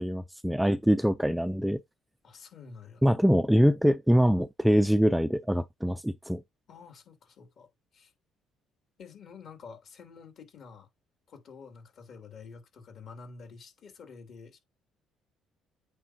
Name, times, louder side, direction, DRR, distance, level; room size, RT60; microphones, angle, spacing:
voice 1, 0.0-1.8 3.0-6.4, equal, 5° right, 0.4 m, -24 dB
voice 2, 2.2-3.0 6.7-8.1 9.0-10.9 11.3-14.6, left 5 dB, 55° left, 2.9 m, -49 dB
8.7 x 4.6 x 2.8 m
cardioid pair, 110°, 0 cm